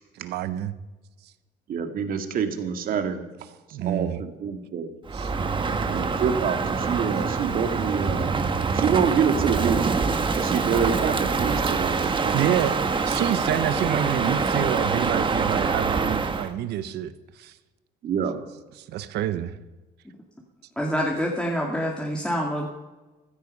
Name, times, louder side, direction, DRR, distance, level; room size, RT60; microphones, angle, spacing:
voice 1, 0.2-0.7 3.7-4.2 5.1-5.3 12.3-12.8 13.0-17.1 17.4-17.5 18.9-19.5, right 11 dB, 75° right, 13 dB, 1.1 m, -27 dB
voice 2, 1.7-3.2 3.8-4.9 5.9-8.4 8.7-9.9 10.3-12.5 18.0-18.4, right 7 dB, 55° right, 7 dB, 2.1 m, -26 dB
Crow, 5.1-16.5, right 4 dB, 30° right, 1.4 m, -25 dB
voice 3, 20.8-22.7, equal, 5° left, -2 dB, 2.4 m, -26 dB
15.5 x 13.5 x 5.5 m, 1.1 s
cardioid pair, 110°, 17 cm